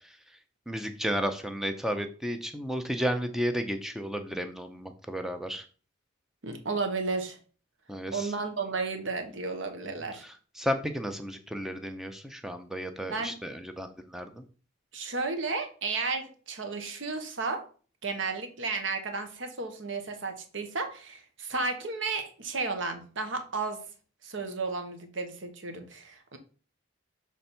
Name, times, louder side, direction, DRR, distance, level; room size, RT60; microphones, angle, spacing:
voice 1, 0.7-5.6 7.9-8.3 10.2-14.4, equal, ahead, 0.5 m, -33 dB
voice 2, 6.4-7.4 8.1-10.2 13.1-13.4 14.9-17.7 18.0-23.8 24.2-26.4, right 3 dB, 70° right, 1.1 m, -33 dB
6.7 x 3.4 x 4.3 m
head